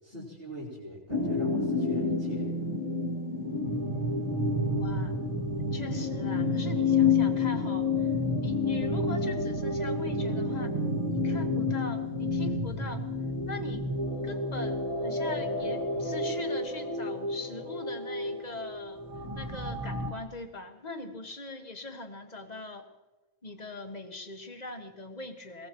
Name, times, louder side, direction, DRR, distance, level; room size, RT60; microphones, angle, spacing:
voice 1, 0.0-2.5, equal, 45° right, -8 dB, 4.7 m, -42 dB
sound 1, 1.1-20.1, left 3 dB, 25° right, 1.8 m, -29 dB
voice 2, 4.7-5.2 5.6-8.1 8.4-10.8 11.1-13.0 13.4-13.9 14.2-19.0 19.3-22.9 23.4-25.7, left 2 dB, 30° left, 5 dB, 1.6 m, -41 dB
22.5 x 19.5 x 3.0 m, 1.2 s
omnidirectional pair, 1.6 m